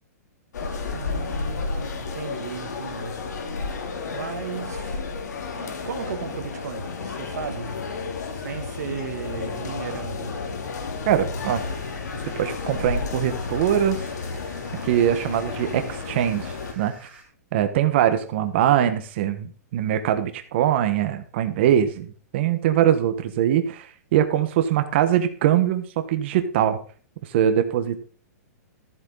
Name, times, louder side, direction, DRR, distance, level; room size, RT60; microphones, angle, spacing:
sound 1, 0.5-16.7, left 4 dB, 90° left, 3.0 m, -32 dB
voice 1, 0.9-3.3 4.1-5.0 5.5-7.9 8.3-10.4, right 7 dB, 75° right, 2.2 m, -35 dB
voice 2, 11.1-11.6 12.4-14.0 14.8-16.9 17.5-22.1 22.3-26.8 27.2-28.0, right 10 dB, 40° right, 1.4 m, -22 dB
sound 2, 11.4-17.2, right 2 dB, 10° right, 4.0 m, -48 dB
14.0 x 8.2 x 3.9 m
hypercardioid pair, 165°, 9 cm